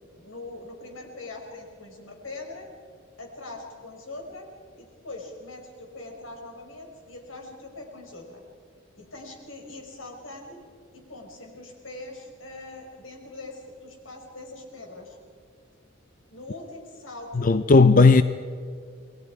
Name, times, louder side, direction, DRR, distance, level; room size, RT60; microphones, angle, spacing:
voice 1, 0.1-2.7 3.2-4.5 4.8-8.4 9.0-10.6 10.9-15.2 16.3-17.5 17.9-18.2, left 2 dB, 80° left, 1 dB, 5.1 m, -42 dB
voice 2, 17.4-18.2, left 3 dB, 40° left, 12 dB, 0.5 m, -15 dB
29.0 x 21.0 x 4.8 m, 2.3 s
head